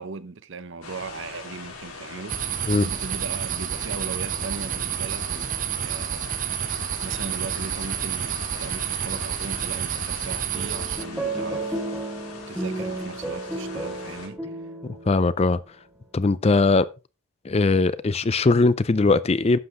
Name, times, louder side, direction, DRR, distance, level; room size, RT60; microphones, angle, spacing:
voice 1, 0.0-6.2 6.5-11.8 12.5-14.5, right 4 dB, 60° right, 0.8 m, -38 dB
sound 1, 0.8-14.3, left 4 dB, 85° left, 3.6 m, -41 dB
sound 2, 2.3-11.0, right 10 dB, 40° right, 0.4 m, -29 dB
sound 3, 10.5-15.4, right 2 dB, 5° right, 1.5 m, -32 dB
voice 2, 14.8-15.6 16.1-16.9 17.4-19.6, left 3 dB, 30° left, 0.4 m, -20 dB
11.5 x 7.7 x 3.7 m
head